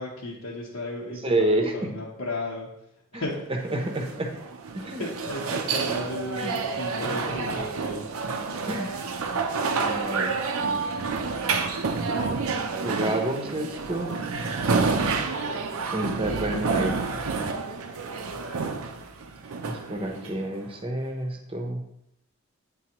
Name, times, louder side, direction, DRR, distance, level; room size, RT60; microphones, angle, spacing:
voice 1, 0.0-2.7 3.1-3.4 5.0-8.1 19.9-20.5, left 1 dB, 85° left, -5 dB, 1.0 m, -35 dB
voice 2, 1.2-1.7 3.1-3.3 3.7-4.3 4.7-5.0 6.4-6.5 7.0-7.1 8.2-8.3 8.7-9.0 9.8-10.3 12.8-14.1 15.9-16.9 19.7-21.8, right 1 dB, 25° right, 3 dB, 0.7 m, -29 dB
sound 1, 3.7-20.7, right 4 dB, 75° right, 0.5 m, -29 dB
8.7 x 3.9 x 3.0 m, 0.79 s
head